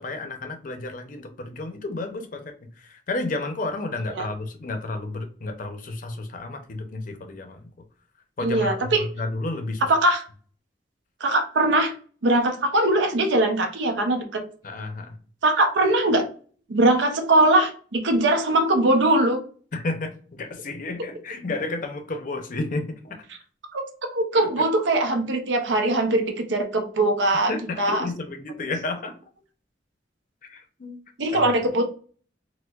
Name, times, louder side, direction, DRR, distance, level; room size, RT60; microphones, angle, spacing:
voice 1, 0.0-7.7 8.4-9.8 14.6-15.2 19.7-23.2 24.3-24.5 27.5-29.1 30.4-31.0 31.3-31.5, left 2 dB, 50° left, 6 dB, 0.5 m, -32 dB
voice 2, 8.4-9.1 9.9-10.2 11.2-11.9 12.2-14.5 15.4-16.2 16.7-19.4 23.7-23.8 24.1-27.5 27.8-28.1 31.2-31.8, right 2 dB, 85° right, 5 dB, 0.6 m, -21 dB
4.4 x 2.1 x 2.3 m, 0.43 s
head